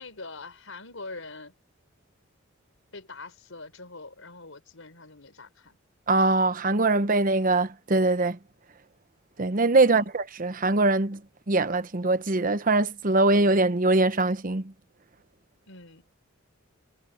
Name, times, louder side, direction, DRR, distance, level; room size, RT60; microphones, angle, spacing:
voice 1, 0.0-1.5 2.9-5.8 9.8-10.1 15.7-16.0, left 3 dB, 80° left, 4.2 m, -43 dB
voice 2, 6.1-8.4 9.4-11.2 11.5-14.7, right 2 dB, 45° right, 1.0 m, -22 dB
head